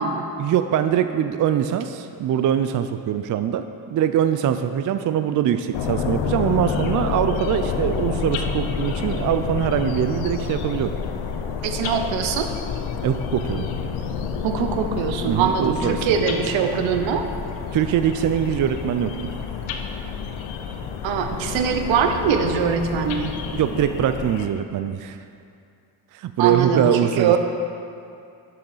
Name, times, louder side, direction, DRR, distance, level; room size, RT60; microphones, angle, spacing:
voice 1, 0.4-3.7 3.9-11.0 13.0-13.6 15.3-16.1 17.7-19.3 23.5-25.2 26.1-27.4, right 9 dB, 45° right, 9 dB, 0.4 m, -23 dB
sound 1, 5.7-24.5, left 6 dB, 80° left, 0.8 m, -29 dB
voice 2, 11.6-12.5 14.4-17.2 21.0-23.3 26.4-27.4, right 7 dB, 75° right, 6 dB, 0.8 m, -22 dB
7.1 x 5.6 x 5.5 m, 2.4 s
supercardioid pair, 60°, 46 cm